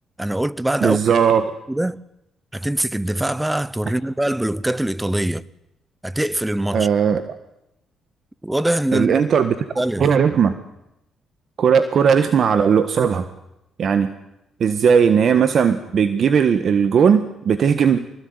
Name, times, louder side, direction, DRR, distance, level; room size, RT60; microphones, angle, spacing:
voice 1, 0.2-1.0 1.7-2.0 2.5-5.4 6.0-6.9 8.4-9.2 9.8-10.1, right 1 dB, 10° right, 0.9 m, -23 dB
voice 2, 0.8-1.5 6.7-7.3 8.9-9.5 10.0-10.6 11.6-13.3 13.8-14.1 14.6-18.0, right 7 dB, 55° right, 1.6 m, -17 dB
24.5 x 20.5 x 9.7 m
cardioid pair, 90°, 0 cm